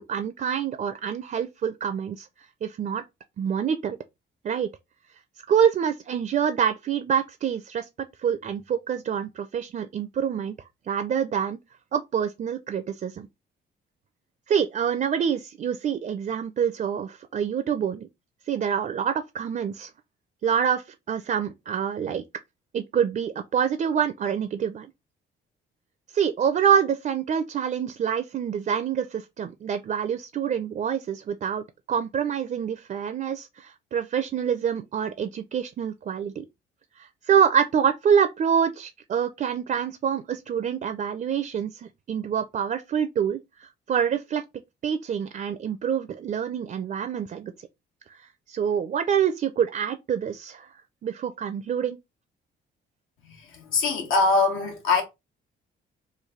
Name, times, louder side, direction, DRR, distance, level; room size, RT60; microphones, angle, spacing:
voice 1, 0.1-3.0 3.4-4.0 4.4-4.7 5.5-7.9 8.2-10.6 10.9-11.6 11.9-13.3 14.5-18.1 18.5-19.9 20.4-22.2 22.7-24.9 26.1-36.4 37.0-43.4 43.9-44.4 44.8-47.5 48.1-48.2 48.5-50.7 51.0-52.0, right 8 dB, 40° right, 0.4 m, -26 dB
voice 2, 53.2-55.0, left 3 dB, 80° left, 1.3 m, -23 dB
3.2 x 2.3 x 3.6 m
cardioid pair, 90°, 20 cm